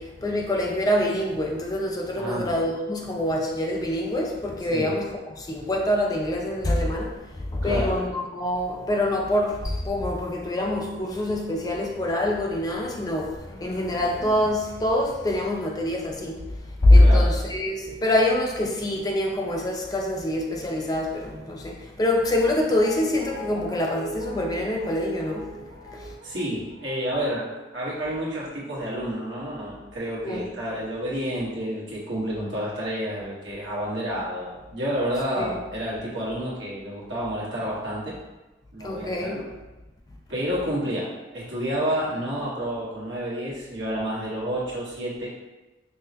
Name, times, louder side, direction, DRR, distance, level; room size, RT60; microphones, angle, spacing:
voice 1, 0.0-16.5 16.8-25.6 25.9-26.2 30.2-30.5 35.4-35.6 38.8-39.4, left 1 dB, 20° left, 0 dB, 0.4 m, -24 dB
voice 2, 2.1-2.5 4.7-4.9 7.6-7.9 17.0-17.3 26.2-27.5 27.7-38.2 38.7-39.5 40.3-45.3, equal, 80° right, -6 dB, 1.2 m, -29 dB
Guitar, 22.2-29.2 29.5-29.6, right 1 dB, 55° right, 1.5 m, -41 dB
5.4 x 2.1 x 2.8 m, 1.1 s
head